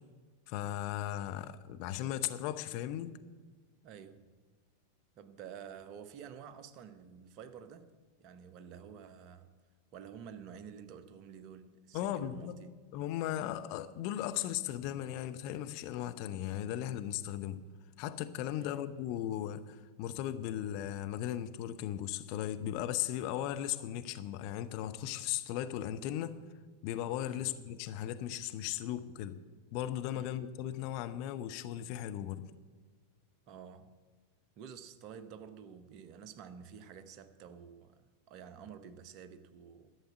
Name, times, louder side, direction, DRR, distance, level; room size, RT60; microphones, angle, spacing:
voice 1, 0.5-3.1 11.9-12.6 12.9-17.6 18.0-26.4 26.8-29.4 29.7-32.4, left 12 dB, 45° left, 0.6 m, -37 dB
voice 2, 3.8-4.3 5.2-7.9 8.2-9.6 9.9-12.7 18.5-18.9 27.3-27.6 30.1-30.4 33.5-33.9 34.6-40.0, right 7 dB, 40° right, 0.8 m, -50 dB
12.0 x 7.1 x 7.9 m
figure-of-eight pair, 90°, 0 cm